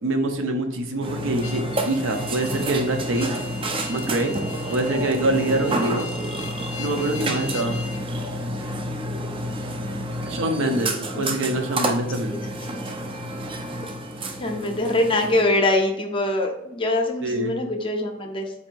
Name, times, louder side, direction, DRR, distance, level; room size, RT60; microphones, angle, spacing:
voice 1, 0.0-3.3 3.9-4.3 4.7-6.1 6.8-7.8 10.2-12.4 17.2-17.6, right 1 dB, 75° right, 5 dB, 0.6 m, -25 dB
Burping eructation, 1.0-15.4, right 1 dB, 25° right, 0.4 m, -29 dB
sound 1, 1.4-8.0, left 4 dB, 80° left, 0.4 m, -39 dB
voice 2, 14.4-18.5, left 1 dB, 25° left, 3 dB, 0.5 m, -23 dB
4.1 x 2.6 x 4.4 m, 0.89 s
head